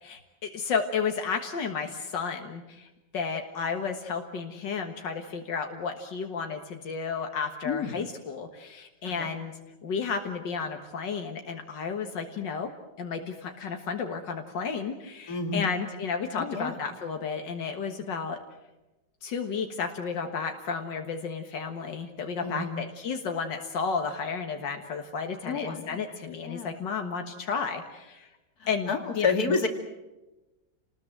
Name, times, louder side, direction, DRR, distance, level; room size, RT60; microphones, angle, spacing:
voice 1, 0.0-9.5 9.8-12.7 13.0-18.4 19.2-28.3 28.7-29.3, left 5 dB, 85° left, 4 dB, 2.2 m, -32 dB
voice 2, 15.3-15.7 16.3-16.8 22.4-22.8 25.4-26.0 26.5-26.7 28.6-29.7, left 4 dB, 55° left, 4 dB, 3.0 m, -29 dB
29.0 x 19.5 x 7.8 m, 1.0 s
omnidirectional pair, 1.9 m